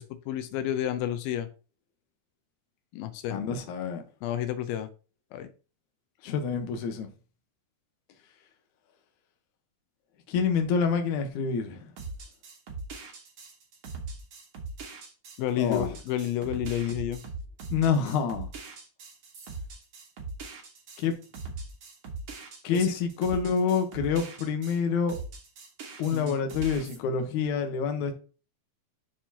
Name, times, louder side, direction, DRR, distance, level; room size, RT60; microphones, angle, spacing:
voice 1, 0.0-1.5 2.9-3.4 4.2-4.9 5.3-5.5 15.4-17.2 22.7-22.9 26.1-26.4, left 11 dB, 90° left, 2.5 m, -30 dB
voice 2, 3.3-4.0 6.2-7.1 10.3-11.9 15.6-15.9 17.7-18.5 21.0-21.2 22.6-25.2 26.0-28.1, left 6 dB, 65° left, 2.2 m, -27 dB
sound 1, 12.0-24.8 25.1-27.0, right 3 dB, 50° right, 2.0 m, -41 dB
11.5 x 4.4 x 2.8 m
omnidirectional pair, 4.1 m